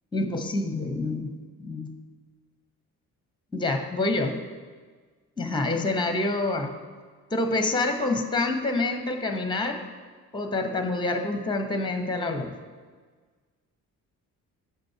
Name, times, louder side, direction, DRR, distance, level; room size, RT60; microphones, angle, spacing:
voice 1, 0.1-2.0 3.5-4.4 5.4-6.8 7.3-9.8 10.3-12.5, left 2 dB, 10° left, 6 dB, 0.9 m, -27 dB
8.0 x 5.1 x 4.7 m, 1.5 s
figure-of-eight pair, 40°, 46 cm